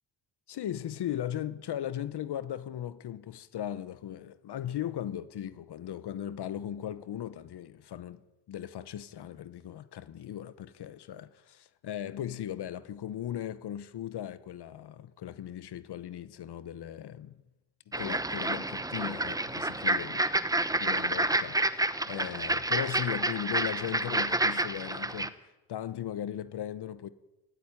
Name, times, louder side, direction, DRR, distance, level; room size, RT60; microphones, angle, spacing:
voice 1, 0.5-8.2 8.5-17.4 17.9-20.2 20.8-25.3 25.7-27.1, left 11 dB, 60° left, 1.0 m, -38 dB
sound 1, 17.9-25.3, right 2 dB, 10° right, 0.9 m, -29 dB
20.5 x 14.0 x 9.8 m
cardioid pair, 125°, 44 cm